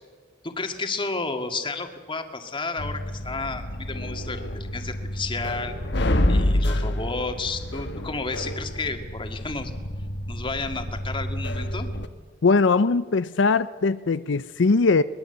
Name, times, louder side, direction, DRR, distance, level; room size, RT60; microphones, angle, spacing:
voice 1, 0.4-5.7 6.3-9.7 10.3-11.9, left 3 dB, 30° left, 6 dB, 2.0 m, -32 dB
sound 1, 2.8-12.1, left 1 dB, 65° left, 1.4 m, -28 dB
voice 2, 12.4-15.0, left 4 dB, 90° left, 14 dB, 0.6 m, -20 dB
22.5 x 20.5 x 7.9 m, 1.4 s
head